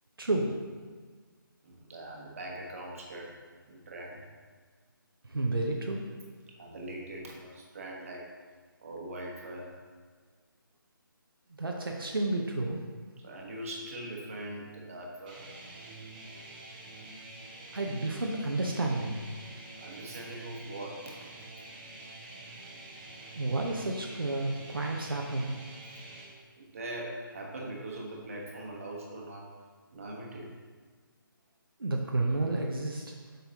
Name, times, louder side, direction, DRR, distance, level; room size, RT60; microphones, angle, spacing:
voice 1, 0.2-0.5 5.3-6.0 11.6-12.8 17.7-19.2 23.3-25.6 31.8-33.1, right 2 dB, 75° right, 0 dB, 0.8 m, -31 dB
voice 2, 1.6-3.4 3.7-4.2 6.6-8.3 8.8-9.7 13.2-15.4 19.8-21.0 26.5-29.5 29.9-30.5, right 1 dB, 40° right, -2 dB, 1.2 m, -41 dB
sound 1, 15.3-26.3, right 2 dB, 20° right, 0.8 m, -47 dB
7.4 x 5.6 x 2.8 m, 1.5 s
figure-of-eight pair, 150°, 12 cm